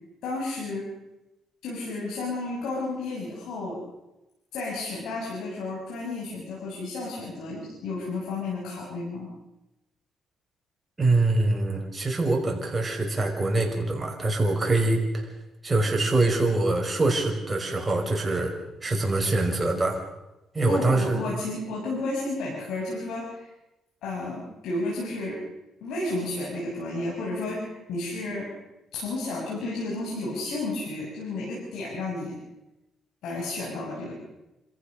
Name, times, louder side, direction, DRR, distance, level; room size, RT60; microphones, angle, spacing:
voice 1, 0.2-0.9 1.6-3.8 4.5-9.3 20.6-23.5 24.0-25.4 25.8-28.6 28.9-32.4 33.2-34.1, left 2 dB, 80° left, -5 dB, 7.0 m, -32 dB
voice 2, 11.0-15.3 15.6-18.5 18.8-20.0 20.5-21.2, right 2 dB, 20° right, 1 dB, 5.7 m, -24 dB
27.0 x 15.0 x 6.7 m, 0.97 s
cardioid pair, 90°, 0 cm